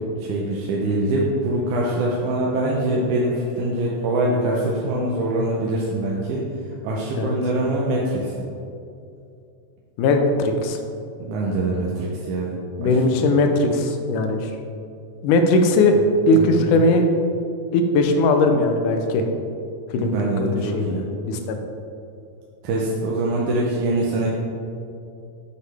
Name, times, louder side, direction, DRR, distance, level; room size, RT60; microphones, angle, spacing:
voice 1, 0.0-6.4 6.8-8.5 11.2-12.6 12.8-13.2 16.3-16.6 20.0-21.1 22.6-24.3, right 1 dB, 80° right, -3 dB, 2.2 m, -24 dB
voice 2, 10.0-10.8 12.8-14.5 15.2-16.0 16.3-17.0 17.7-19.3 19.9-20.2 20.6-21.0 21.3-21.6, left 2 dB, 90° left, 5 dB, 2.2 m, -19 dB
7.4 x 6.2 x 3.4 m, 2.6 s
omnidirectional pair, 3.5 m